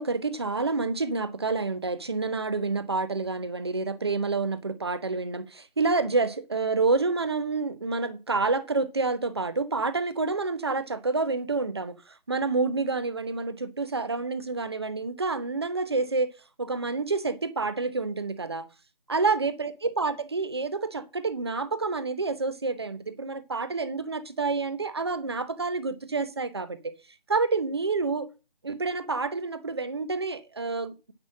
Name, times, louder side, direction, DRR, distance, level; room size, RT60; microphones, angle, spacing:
voice 1, 0.0-12.0 12.3-16.3 16.6-18.7 19.1-26.8 27.3-28.3 28.6-30.9, right 3 dB, 25° right, 0.9 m, -28 dB
8.9 x 5.7 x 7.3 m
figure-of-eight pair, 160°, 29 cm